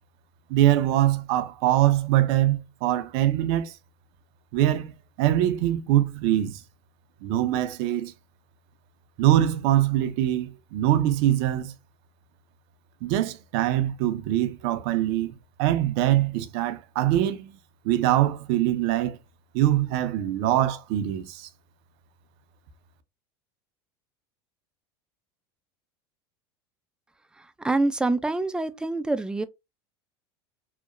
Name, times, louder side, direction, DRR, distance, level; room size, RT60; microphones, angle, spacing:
voice 1, 0.5-3.8 4.5-6.6 7.2-8.1 9.2-11.7 13.0-15.3 15.6-17.6 17.8-19.2 19.5-21.5, right 13 dB, 65° right, 0.6 m, -23 dB
voice 2, 27.4-29.4, right 2 dB, 5° right, 0.3 m, -26 dB
2.9 x 2.1 x 2.4 m
hypercardioid pair, 90°, 13 cm